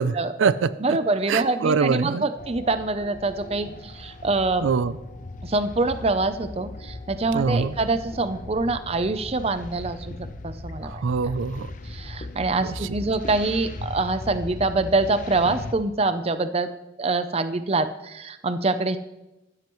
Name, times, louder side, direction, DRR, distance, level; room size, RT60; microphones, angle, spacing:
voice 1, 0.0-0.7 1.3-2.2 4.6-4.9 7.3-7.7 10.8-11.7 12.6-12.7, right 5 dB, 80° right, 15 dB, 0.4 m, -23 dB
voice 2, 0.8-4.7 5.4-10.1 10.4-11.0 11.8-16.7 17.0-19.0, right 3 dB, 30° right, 11 dB, 0.5 m, -25 dB
sound 1, 2.4-15.7, left 2 dB, 40° left, 0.8 m, -38 dB
15.0 x 12.0 x 3.1 m, 0.98 s
head